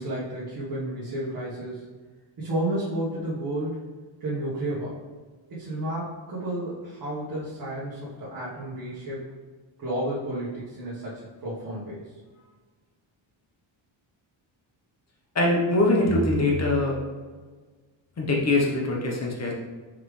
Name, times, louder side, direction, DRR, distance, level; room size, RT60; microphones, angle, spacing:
voice 1, 0.0-1.8 2.4-3.8 4.2-5.0 5.5-9.2 9.8-12.1, right 1 dB, 45° right, -9 dB, 1.5 m, -31 dB
voice 2, 15.3-17.0 18.2-19.5, left 2 dB, 35° left, -2 dB, 1.1 m, -23 dB
5.8 x 4.9 x 3.3 m, 1.4 s
wide cardioid pair, 175°, 48 cm